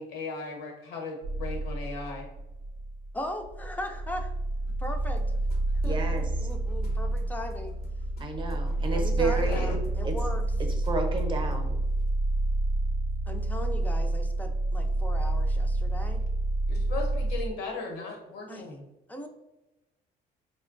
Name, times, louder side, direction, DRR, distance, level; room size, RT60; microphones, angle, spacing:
voice 1, 0.0-2.3 9.5-9.8 16.7-18.8, left 3 dB, 90° left, 1 dB, 1.0 m, -37 dB
sound 1, 1.2-17.5, right 2 dB, 80° right, 0.5 m, -29 dB
voice 2, 3.1-4.3 4.8-5.2 5.8-7.7 8.9-10.4 13.3-16.2 18.5-18.7 19.1-19.3, left 1 dB, 10° left, 4 dB, 0.4 m, -38 dB
sound 2, 4.6-11.7, left 5 dB, 65° left, 0.6 m, -43 dB
voice 3, 5.8-6.5 8.2-9.7 10.0-10.1 10.8-11.8, right 3 dB, 30° right, 3 dB, 0.7 m, -31 dB
4.3 x 2.2 x 2.5 m, 0.97 s
cardioid pair, 110°, 17 cm